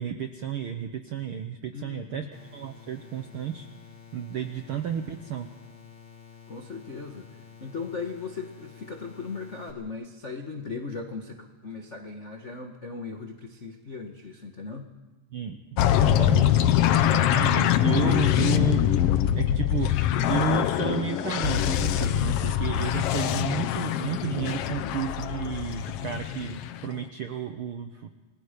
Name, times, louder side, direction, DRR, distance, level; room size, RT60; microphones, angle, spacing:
voice 1, 0.0-2.3 2.5-3.7 4.1-5.5 15.3-15.6 16.0-16.6 17.3-18.8 19.3-19.9 20.3-28.1, right 9 dB, 75° right, 6 dB, 1.2 m, -32 dB
voice 2, 1.7-2.3 6.5-7.3 7.6-14.9, left 4 dB, 60° left, 3 dB, 0.7 m, -38 dB
sound 1, 2.3-9.7, left 7 dB, 35° left, 3.9 m, -50 dB
sound 2, 15.8-26.9, left 11 dB, 80° left, 1.3 m, -24 dB
28.5 x 20.5 x 5.2 m, 1.1 s
omnidirectional pair, 3.7 m